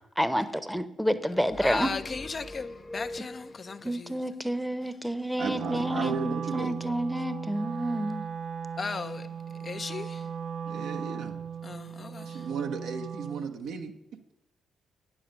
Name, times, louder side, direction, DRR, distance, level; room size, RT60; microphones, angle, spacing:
voice 1, 0.2-1.9 3.8-8.2, equal, ahead, 0.9 m, -29 dB
sound 1, 1.5-3.9, left 1 dB, 25° left, 0.9 m, -43 dB
voice 2, 1.6-4.1 8.8-9.3 9.6-10.2 11.6-12.3, left 4 dB, 45° left, 0.6 m, -36 dB
voice 3, 5.4-6.7 10.6-11.4 12.2-13.9, right 5 dB, 75° right, 1.0 m, -34 dB
Wind instrument woodwind instrument, 5.5-13.5, right 7 dB, 55° right, 0.5 m, -37 dB
9.4 x 6.1 x 6.3 m
hypercardioid pair, 45°, 0 cm